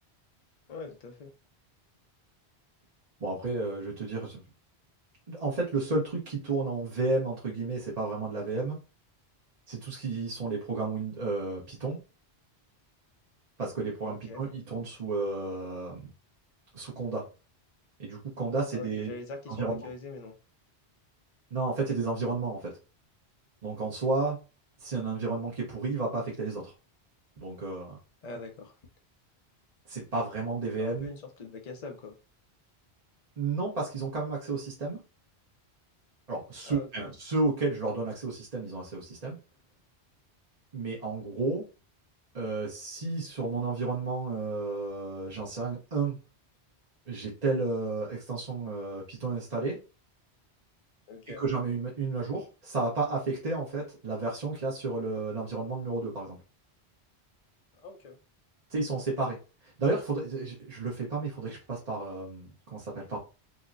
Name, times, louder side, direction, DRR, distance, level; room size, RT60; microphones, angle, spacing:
voice 1, 0.7-1.3 14.1-14.4 18.7-20.3 28.2-28.7 30.8-32.2 36.6-37.1 51.1-51.4 57.8-58.2, left 3 dB, 45° left, 4 dB, 0.7 m, -42 dB
voice 2, 3.2-4.4 5.3-8.8 9.7-12.0 13.6-16.1 16.7-17.2 18.0-19.1 19.5-19.9 21.5-22.8 23.6-24.4 24.8-26.7 27.4-28.0 29.9-31.1 33.4-35.0 36.3-39.4 40.7-41.7 42.3-46.2 47.1-49.8 51.4-56.4 58.7-63.2, right 3 dB, 40° right, -4 dB, 1.0 m, -32 dB
4.1 x 2.1 x 2.5 m, 0.31 s
omnidirectional pair, 1.1 m